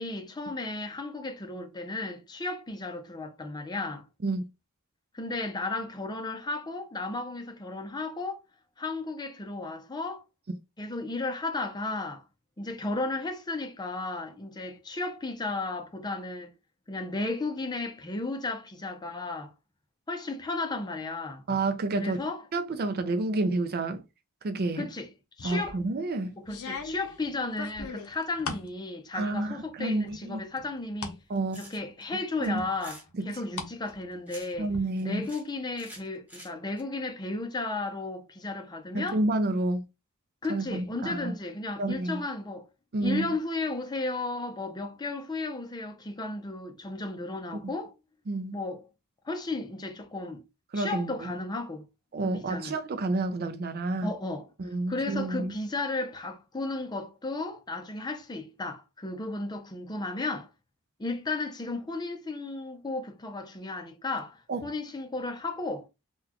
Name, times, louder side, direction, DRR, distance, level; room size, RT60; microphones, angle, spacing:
voice 1, 0.0-4.0 5.1-8.4 8.8-10.2 10.8-12.2 12.6-16.5 16.9-19.5 20.1-21.4 22.0-22.4 24.8-25.1 25.4-25.8 26.4-31.2 31.5-33.0 33.2-34.7 35.0-39.2 40.4-42.7 43.0-47.9 48.5-48.8 49.2-50.4 50.7-51.8 52.2-52.7 54.0-54.4 54.9-60.5 61.0-65.9, left 2 dB, 20° left, 0.5 m, -34 dB
voice 2, 21.5-22.2 22.5-24.0 24.4-24.9 25.4-26.3 29.1-30.4 31.3-31.7 32.4-32.6 33.1-33.3 33.5-33.6 34.6-35.3 38.9-39.8 40.5-41.3 41.8-42.2 42.9-43.3 48.3-48.6 50.7-51.3 52.1-54.1 54.6-55.5 64.5-64.7, right 2 dB, 45° right, 0.4 m, -29 dB
sound 1, 25.4-25.8 26.4-28.7 29.1-29.7 30.1-31.2 31.6-31.7 32.6-33.7 34.0-34.8, left 4 dB, 90° left, 0.8 m, -39 dB
sound 2, 31.3-32.0 32.4-33.0 33.9-34.7 35.0-35.5 35.8-36.8, right 1 dB, 10° right, 0.9 m, -48 dB
3.8 x 2.3 x 2.9 m
head